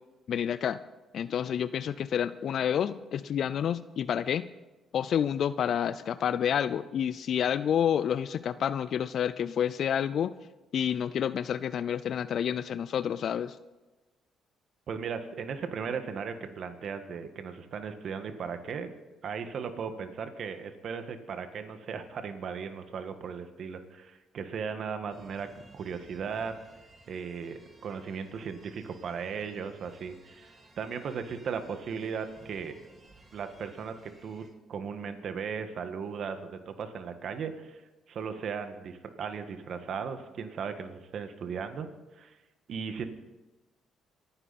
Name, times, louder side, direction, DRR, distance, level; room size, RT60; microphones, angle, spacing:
voice 1, 0.3-0.8 1.1-4.4 4.9-10.3 10.7-13.6, left 9 dB, 65° left, 15 dB, 0.5 m, -29 dB
voice 2, 14.9-18.9 19.2-25.5 25.7-26.5 27.1-32.8 33.3-37.8 38.1-41.9 42.1-42.4 42.7-43.0, right 6 dB, 60° right, 8 dB, 1.6 m, -37 dB
sound 1, 25.1-34.5, right 2 dB, 40° right, 4.4 m, -57 dB
25.5 x 10.0 x 4.2 m, 1.1 s
supercardioid pair, 70°, 0 cm